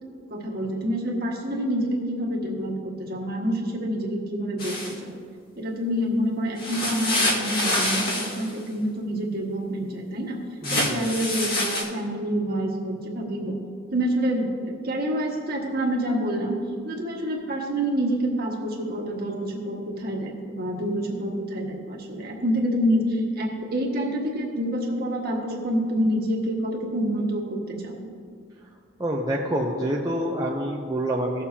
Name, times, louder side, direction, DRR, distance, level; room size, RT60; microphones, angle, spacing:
voice 1, 0.3-5.2 5.6-10.4 10.7-13.6 13.9-16.6 16.8-28.1, equal, 50° right, -1 dB, 1.5 m, -27 dB
sound 1, 4.6-4.9 6.6-8.5 10.6-11.8, left 1 dB, 50° left, 1.9 m, -26 dB
voice 2, 10.6-10.9 29.0-31.4, right 1 dB, 20° right, -2 dB, 0.6 m, -27 dB
17.0 x 7.1 x 2.8 m, 2.1 s
head